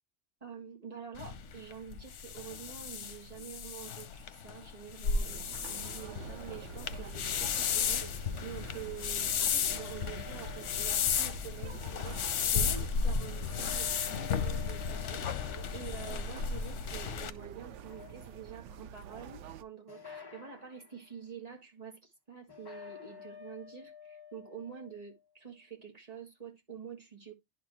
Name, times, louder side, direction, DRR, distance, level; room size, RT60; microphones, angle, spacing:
voice 1, 0.4-27.3, right 7 dB, 35° right, 1.8 m, -47 dB
sound 1, 1.2-17.3, left 6 dB, 90° left, 1.0 m, -34 dB
sound 2, 5.2-19.6, right 9 dB, 85° right, 0.9 m, -48 dB
sound 3, 9.7-11.7 13.5-17.2 17.7-18.7 19.9-21.0 22.5-25.2, left 7 dB, 25° left, 0.7 m, -51 dB
11.0 x 4.3 x 3.0 m
omnidirectional pair, 1.2 m